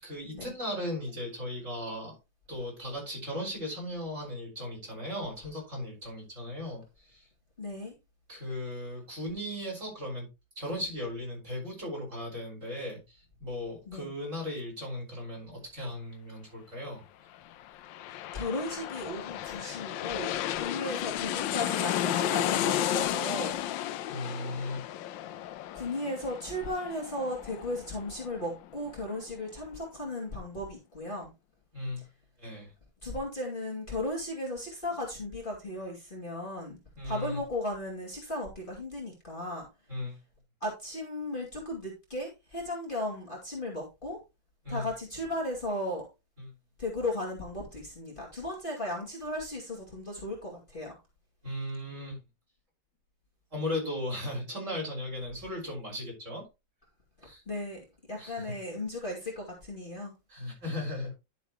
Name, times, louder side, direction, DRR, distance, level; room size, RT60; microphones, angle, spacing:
voice 1, 0.0-2.2 2.5-7.3 8.3-10.3 10.6-17.0 24.1-24.8 31.7-32.0 32.4-32.7 37.0-37.4 39.9-40.2 44.6-44.9 46.4-46.5 51.4-52.2 53.5-56.5 57.2-57.4 58.2-58.5 60.3-61.1, left 1 dB, 40° right, 5.6 m, -37 dB
voice 2, 7.6-7.9 13.9-14.1 18.3-23.6 25.7-31.3 33.0-36.8 37.0-39.7 40.6-44.2 44.7-46.0 46.8-51.0 57.5-60.1, left 1 dB, 25° left, 2.7 m, -36 dB
sound 1, 17.5-28.9 29.2-29.3, left 12 dB, 80° left, 1.3 m, -33 dB
11.5 x 7.1 x 3.0 m
omnidirectional pair, 2.1 m